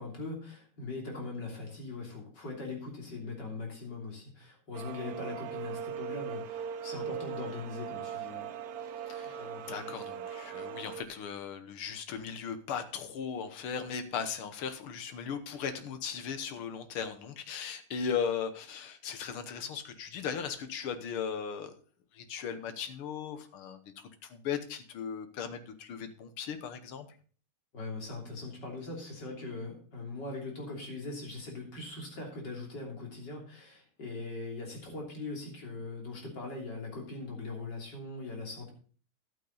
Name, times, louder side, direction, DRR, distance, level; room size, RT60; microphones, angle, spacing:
voice 1, 0.0-8.4 9.4-10.0 27.7-38.7, left 3 dB, 55° left, 0 dB, 3.7 m, -41 dB
sound 1, 4.7-11.0, right 8 dB, 70° right, 0.9 m, -39 dB
voice 2, 9.1-9.4 9.7-21.7 22.1-27.1, left 7 dB, 90° left, 10 dB, 2.0 m, -37 dB
12.0 x 8.6 x 4.0 m, 0.41 s
omnidirectional pair, 2.3 m